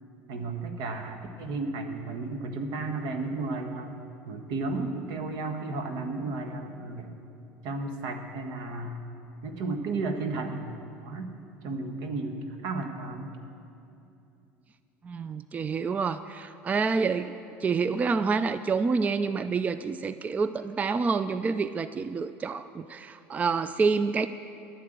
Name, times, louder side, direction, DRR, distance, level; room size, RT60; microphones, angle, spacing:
voice 1, 0.3-4.0 4.3-7.1 7.6-9.0 9.4-10.6 11.0-11.3 11.6-13.3, right 3 dB, 70° right, 5 dB, 1.5 m, -33 dB
voice 2, 15.0-24.3, right 4 dB, 25° right, 13 dB, 0.3 m, -28 dB
11.5 x 9.8 x 7.9 m, 2.7 s
supercardioid pair, 100°, 7 cm